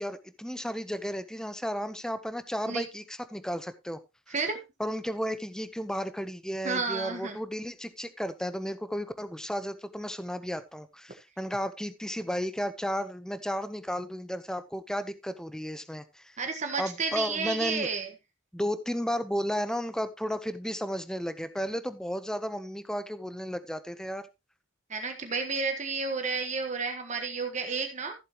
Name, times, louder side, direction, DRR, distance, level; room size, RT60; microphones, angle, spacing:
voice 1, 0.0-4.0 4.3-4.4 4.8-16.4 16.8-17.9 18.5-24.3, equal, 5° left, 12 dB, 0.9 m, -33 dB
voice 2, 4.3-4.6 6.6-7.4 16.4-18.1 24.9-28.1, right 4 dB, 35° right, 5 dB, 1.4 m, -31 dB
14.5 x 7.5 x 3.0 m, 0.24 s
head